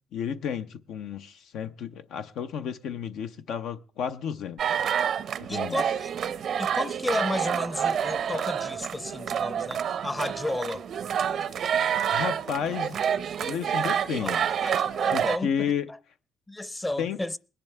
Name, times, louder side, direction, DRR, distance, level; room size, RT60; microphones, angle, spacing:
voice 1, 0.1-4.8 5.4-5.8 12.1-13.0 13.4-14.5 15.1-15.9 17.0-17.2, left 8 dB, 85° left, 0.6 m, -32 dB
sound 1, 4.6-15.4, right 8 dB, 65° right, 0.5 m, -28 dB
voice 2, 5.5-6.1 6.6-10.8 14.2-15.7 16.5-17.4, left 1 dB, 15° left, 0.6 m, -32 dB
21.0 x 10.5 x 3.3 m
cardioid pair, 90°, 0 cm